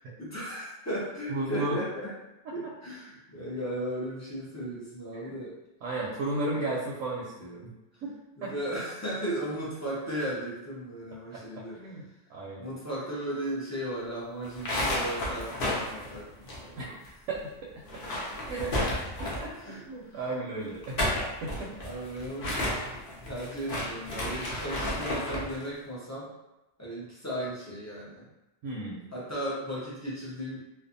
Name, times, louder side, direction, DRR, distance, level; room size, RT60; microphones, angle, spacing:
voice 1, 0.2-2.1 2.5-5.6 6.4-6.6 7.9-8.0 8.4-11.8 12.6-16.9 19.6-20.4 20.8-21.1 21.8-26.3 26.8-28.2 29.1-30.6, right 1 dB, 20° left, -8 dB, 0.4 m, -36 dB
voice 2, 1.3-1.8 5.2-5.3 5.8-7.7 8.0-8.1 8.4-8.5 11.3-12.0 12.3-12.7 16.8-17.0 17.3-17.5 18.5-18.9 19.4-19.5 19.9-21.0 21.4-21.7 28.6-29.0, right 2 dB, 80° right, -4 dB, 1.0 m, -34 dB
sound 1, 14.4-17.1 17.3-17.4 17.8-19.6 20.7-25.5, left 1 dB, 50° left, 0.7 m, -32 dB
2.6 x 2.2 x 2.5 m, 0.97 s
omnidirectional pair, 1.4 m